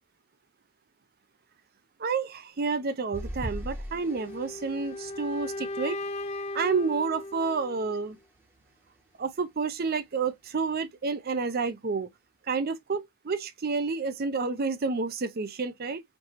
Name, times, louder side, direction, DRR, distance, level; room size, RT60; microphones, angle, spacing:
voice 1, 2.0-6.0 6.5-8.2 9.2-12.1 12.5-16.0, right 4 dB, 45° right, 0.5 m, -30 dB
sound 1, 3.1-7.8 8.4-8.6 9.0-9.1, equal, 10° right, 0.9 m, -42 dB
sound 2, 4.1-8.1, left 2 dB, 30° left, 0.4 m, -37 dB
4.6 x 2.7 x 2.4 m
head